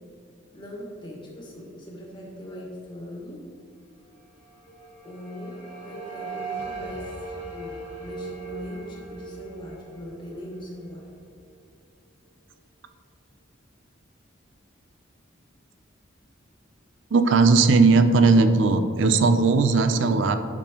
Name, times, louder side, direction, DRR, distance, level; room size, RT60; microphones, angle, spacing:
voice 1, 0.5-3.5 5.0-11.1, equal, 25° left, -3 dB, 1.5 m, -40 dB
sound 1, 4.3-11.4, right 3 dB, 75° left, 1.6 m, -39 dB
voice 2, 17.1-20.4, right 4 dB, 75° right, 9 dB, 0.5 m, -18 dB
10.5 x 6.1 x 3.0 m, 2.2 s
head